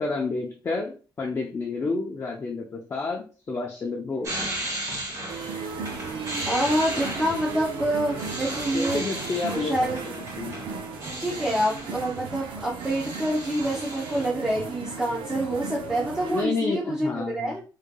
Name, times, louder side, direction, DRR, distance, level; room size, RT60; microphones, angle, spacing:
voice 1, 0.0-4.4 8.7-9.8 10.0-10.6 16.3-17.5, left 3 dB, 30° left, -1 dB, 0.5 m, -30 dB
sound 1, 4.2-12.2 12.5-14.3, right 1 dB, 35° right, 1.6 m, -35 dB
sound 2, 5.3-16.4, right 4 dB, 80° right, 0.7 m, -36 dB
voice 2, 6.5-9.0 9.5-10.0 11.2-17.6, right 1 dB, 5° right, -5 dB, 0.7 m, -27 dB
3.7 x 3.2 x 2.2 m, 0.35 s
cardioid pair, 145°, 9 cm